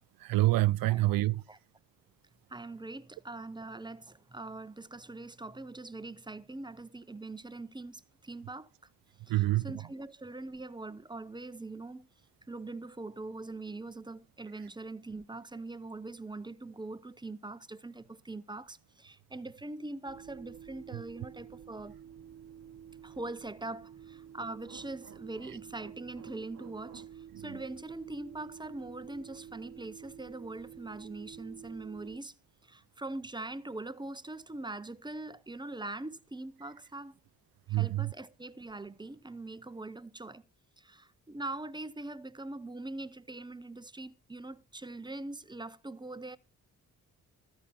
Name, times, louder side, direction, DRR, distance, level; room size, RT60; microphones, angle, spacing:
voice 1, 0.2-1.4 9.3-9.8 20.9-21.0 27.3-27.6 37.7-38.1, right 17 dB, 60° right, 0.5 m, -27 dB
voice 2, 2.5-8.7 9.3-12.1 12.5-21.9 23.0-32.3 32.6-37.2 37.7-40.5 40.8-46.4, right 2 dB, 10° right, 0.6 m, -42 dB
sound 1, 20.1-32.2, right 9 dB, 40° right, 0.8 m, -50 dB
13.0 x 5.7 x 5.6 m
hypercardioid pair, 45°, 40 cm